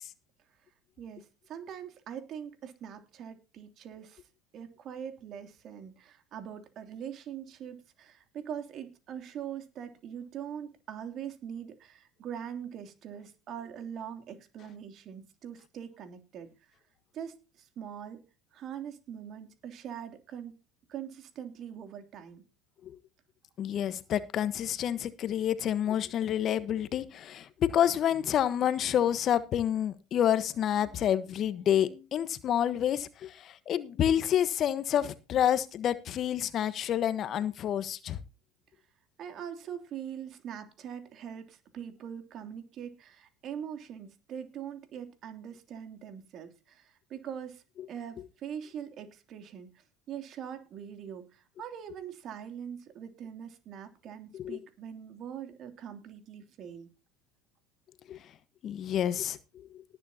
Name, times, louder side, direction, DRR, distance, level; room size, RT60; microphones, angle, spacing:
voice 1, 1.0-4.2 4.5-16.7 17.1-18.2 18.5-20.6 20.9-22.4 39.2-56.9, right 8 dB, 50° right, 7 dB, 3.0 m, -42 dB
voice 2, 23.6-38.2 54.4-54.6 58.1-58.2 58.6-59.4, left 10 dB, 45° left, 14 dB, 1.3 m, -28 dB
19.0 x 9.6 x 2.9 m, 0.30 s
hypercardioid pair, 75°, 0 cm